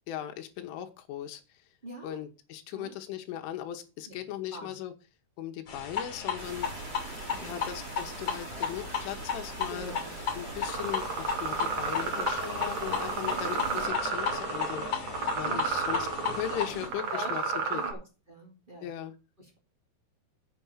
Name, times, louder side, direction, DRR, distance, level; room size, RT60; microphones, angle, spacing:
voice 1, 0.1-1.4 2.0-4.9 5.4-6.7 7.4-9.9 10.3-17.4 17.7-17.8 18.8-19.1, left 11 dB, 85° left, 5 dB, 3.7 m, -38 dB
voice 2, 1.8-2.2 2.7-2.9 4.0-4.1 4.5-4.7 7.2-7.6 9.7-10.1 13.2-13.8 15.4-15.7 16.2-18.0 18.3-18.9 19.4-19.6, equal, 20° right, -1 dB, 1.5 m, -44 dB
sound 1, 5.7-16.9, left 6 dB, 35° left, 2.7 m, -35 dB
sound 2, 6.4-13.9, right 7 dB, 85° right, 4.6 m, -44 dB
sound 3, 10.7-17.9, right 5 dB, 45° right, 2.2 m, -33 dB
7.3 x 7.0 x 7.3 m, 0.32 s
omnidirectional pair, 5.5 m